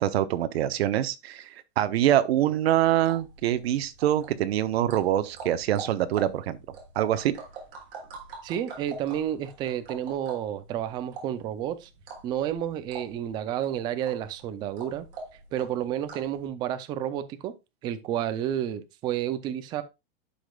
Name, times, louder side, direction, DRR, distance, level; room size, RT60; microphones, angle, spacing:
voice 1, 0.0-6.6 7.0-7.4, right 12 dB, 80° right, 0.9 m, -25 dB
sound 1, 2.8-16.4, right 4 dB, 60° right, 3.5 m, -44 dB
voice 2, 8.4-11.9 12.2-15.1 15.5-17.5 17.8-19.8, right 10 dB, 15° right, 0.3 m, -30 dB
11.5 x 5.1 x 2.3 m
supercardioid pair, 165°, 31 cm